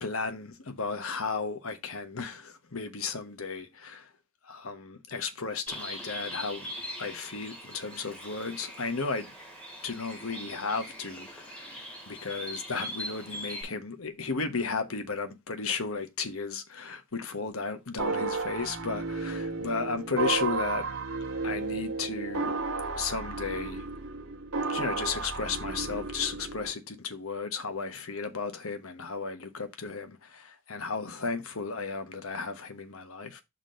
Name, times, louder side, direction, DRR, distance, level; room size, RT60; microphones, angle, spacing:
voice 1, 0.0-4.1 4.4-6.7 7.0-9.3 9.8-11.7 12.1-20.9 21.4-22.5 23.0-23.8 24.7-33.4, left 4 dB, 75° left, 1.2 m, -34 dB
Bird, 5.7-13.6, equal, 5° left, 2.3 m, -41 dB
sound 1, 18.0-26.7, right 3 dB, 85° right, 1.5 m, -33 dB
6.1 x 4.1 x 5.2 m
head